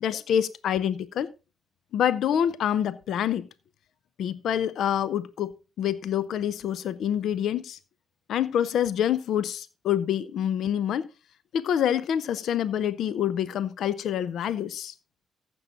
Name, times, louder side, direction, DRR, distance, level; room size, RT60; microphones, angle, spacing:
voice 1, 0.0-1.3 1.9-3.5 4.2-7.8 8.3-11.1 11.5-14.9, left 9 dB, 65° left, 0.5 m, -26 dB
14.5 x 6.2 x 3.8 m
hypercardioid pair, 40°, 0 cm